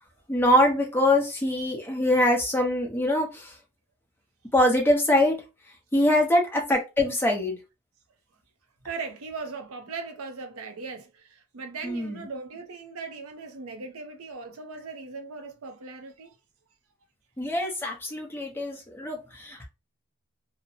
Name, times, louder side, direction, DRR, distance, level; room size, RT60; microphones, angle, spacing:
voice 1, 0.3-3.5 4.5-5.4 5.9-7.6 11.8-12.1 17.4-19.7, left 1 dB, 10° left, 0.7 m, -23 dB
voice 2, 8.8-16.4, right 4 dB, 75° right, 0.6 m, -38 dB
2.8 x 2.0 x 2.7 m
head